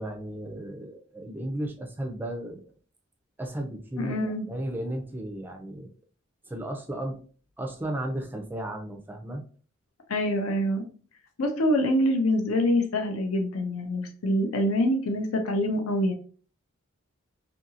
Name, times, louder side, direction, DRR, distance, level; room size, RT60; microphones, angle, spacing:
voice 1, 0.0-2.7 3.4-5.9 6.5-7.2 7.6-9.4, right 1 dB, 10° right, 3 dB, 0.4 m, -34 dB
voice 2, 4.0-4.4 10.1-10.8 11.4-16.1, left 1 dB, 75° left, 3 dB, 0.6 m, -25 dB
2.7 x 2.6 x 2.7 m, 0.41 s
head